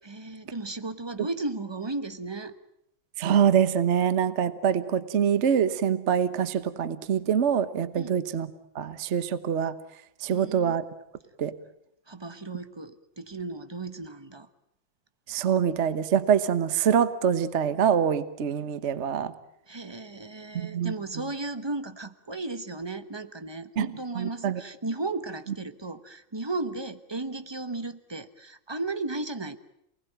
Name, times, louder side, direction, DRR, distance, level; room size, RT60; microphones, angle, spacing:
voice 1, 0.0-2.5 7.9-8.1 10.3-10.8 12.1-14.5 19.7-29.6, right 2 dB, 20° right, 10 dB, 0.6 m, -35 dB
voice 2, 3.2-8.5 8.7-9.7 10.2-10.8 11.4-11.5 15.3-19.3 20.5-20.9 23.8-23.9 24.1-24.6, right 8 dB, 40° right, 13 dB, 1.2 m, -25 dB
28.0 x 20.0 x 9.2 m, 0.77 s
omnidirectional pair, 2.3 m